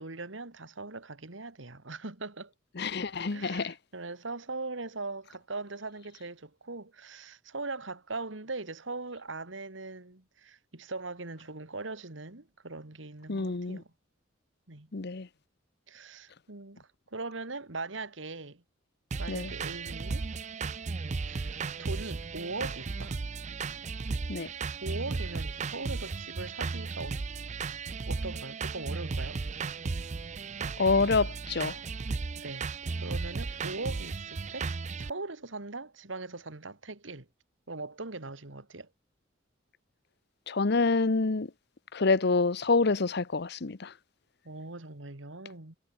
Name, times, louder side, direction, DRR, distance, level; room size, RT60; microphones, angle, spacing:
voice 1, 0.0-2.5 3.3-13.9 14.7-14.9 15.9-18.6 19.2-20.3 21.3-23.2 24.8-27.2 28.1-29.4 32.4-32.7 33.0-37.3 37.7-38.9 44.4-45.8, right 3 dB, 75° right, 2.2 m, -40 dB
voice 2, 2.8-3.8 13.3-13.8 14.9-15.3 19.3-19.5 24.3-24.5 30.8-31.8 40.5-41.5 41.9-43.9, left 3 dB, 60° left, 0.8 m, -27 dB
sound 1, 19.1-35.1, right 4 dB, 40° right, 0.5 m, -35 dB
head